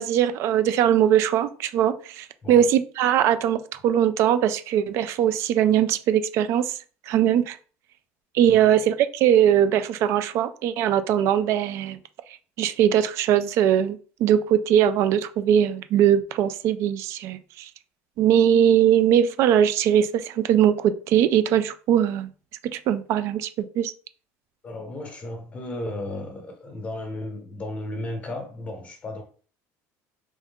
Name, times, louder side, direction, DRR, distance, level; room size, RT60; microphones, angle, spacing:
voice 1, 0.0-6.7 7.1-7.6 8.3-12.0 12.6-17.7 18.2-22.3 22.7-23.5 23.8-23.9, right 10 dB, 45° right, 0.4 m, -21 dB
voice 2, 24.6-29.2, left 1 dB, 20° left, 0.9 m, -34 dB
3.6 x 2.4 x 3.5 m
cardioid pair, 170°, 6 cm